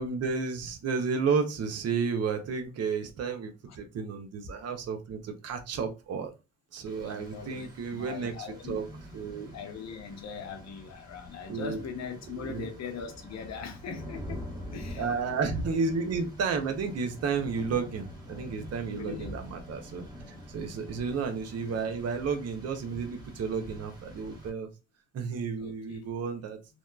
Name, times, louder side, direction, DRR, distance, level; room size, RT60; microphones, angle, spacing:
voice 1, 0.0-6.3 6.7-8.9 9.1-9.5 11.5-11.8 12.3-12.7 15.0-24.7 25.1-26.6, right 5 dB, 55° right, 0.7 m, -32 dB
Rain, 6.9-24.5, equal, 15° right, 1.1 m, -45 dB
voice 2, 7.0-8.8 9.5-14.4 14.7-15.1 18.9-19.4 20.7-20.9 25.6-26.1, left 6 dB, 60° left, 0.7 m, -41 dB
2.8 x 2.2 x 2.2 m
cardioid pair, 90°, 30 cm